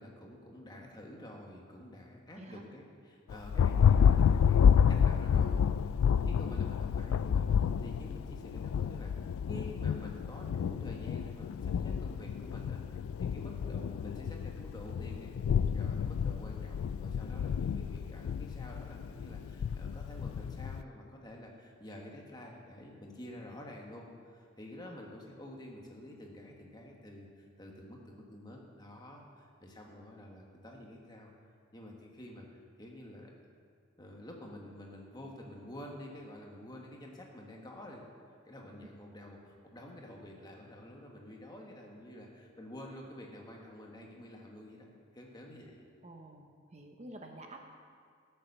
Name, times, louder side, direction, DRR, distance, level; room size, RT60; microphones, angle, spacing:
voice 1, 0.0-31.3 31.7-33.3 34.0-38.0 38.4-44.9 45.1-45.8, left 1 dB, 20° left, 0 dB, 1.4 m, -49 dB
voice 2, 2.3-2.7 24.8-25.0 38.8-38.9 46.0-47.6, right 1 dB, 30° right, 3 dB, 0.8 m, -49 dB
Thunder, 3.3-20.8, left 7 dB, 85° left, 0.3 m, -29 dB
13.5 x 7.0 x 6.7 m, 2.1 s
head